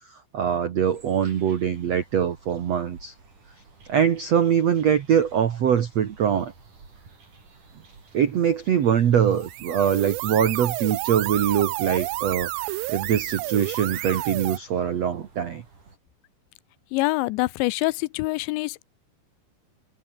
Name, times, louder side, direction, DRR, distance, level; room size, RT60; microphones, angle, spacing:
voice 1, 0.3-3.1 3.9-6.5 8.1-12.5 12.9-15.6, right 8 dB, 65° right, 1.6 m, -23 dB
sound 1, 0.9-16.0, right 4 dB, 45° right, 8.3 m, -52 dB
sound 2, 9.3-14.6, right 19 dB, 85° right, 2.9 m, -31 dB
voice 2, 16.9-18.8, left 22 dB, 85° left, 3.0 m, -25 dB
omnidirectional pair, 5.2 m